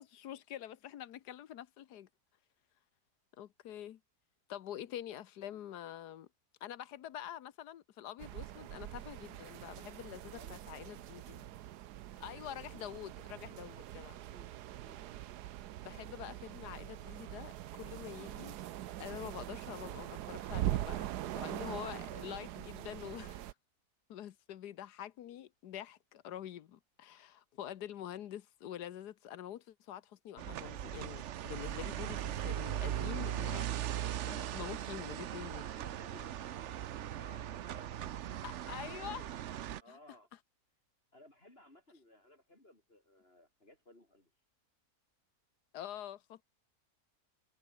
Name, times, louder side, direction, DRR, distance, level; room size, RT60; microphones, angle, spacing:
voice 1, 0.0-2.1 3.4-4.0 4.5-6.3 6.6-11.5 12.2-14.2 15.8-18.6 19.0-23.5 24.1-33.6 34.2-35.7 38.4-39.4 45.7-46.4, left 11 dB, 90° left, 1.5 m, -46 dB
sound 1, 8.2-23.5, right 13 dB, 90° right, 1.3 m, -43 dB
voice 2, 10.3-10.8 12.1-12.8 14.3-15.1 15.6-15.7 35.6-38.2 39.8-40.3 41.1-44.3, left 1 dB, 35° left, 5.9 m, -60 dB
sound 2, 30.4-39.8, right 11 dB, 60° right, 0.8 m, -39 dB
omnidirectional pair, 1.7 m